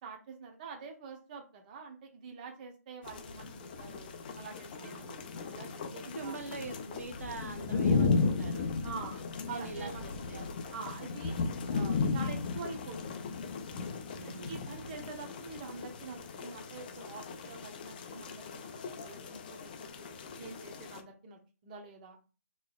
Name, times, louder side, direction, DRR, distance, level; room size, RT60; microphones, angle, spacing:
voice 1, 0.0-6.4 8.8-9.2 9.5-13.3 14.2-22.2, right 5 dB, 30° right, 3 dB, 0.9 m, -46 dB
sound 1, 3.0-21.0, left 4 dB, 30° left, 0.5 m, -35 dB
voice 2, 4.8-5.3 6.0-8.7 9.5-10.4 14.1-14.5, right 4 dB, 55° right, 5 dB, 0.7 m, -44 dB
4.5 x 3.0 x 2.3 m, 0.34 s
figure-of-eight pair, 150°, 9 cm